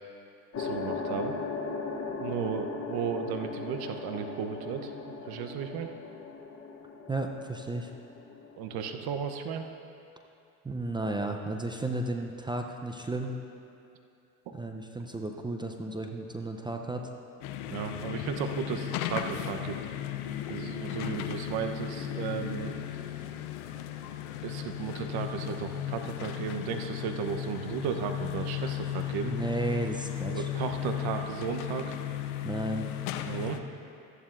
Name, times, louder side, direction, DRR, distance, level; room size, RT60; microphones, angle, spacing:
sound 1, 0.5-9.3, left 4 dB, 35° left, 1.1 m, -38 dB
voice 1, 0.6-1.3 2.2-4.9 5.3-5.9 8.6-9.6 17.7-19.8 20.5-22.8 24.4-29.3 30.3-31.9 33.3-33.6, right 7 dB, 55° right, 5 dB, 1.0 m, -34 dB
voice 2, 7.1-7.9 10.6-13.4 14.5-17.1 29.2-30.5 32.4-32.9, right 2 dB, 10° right, 3 dB, 0.6 m, -33 dB
sound 2, 17.4-33.6, left 11 dB, 80° left, 0.7 m, -35 dB
14.5 x 11.0 x 2.6 m, 2.6 s
hypercardioid pair, 80°, 44 cm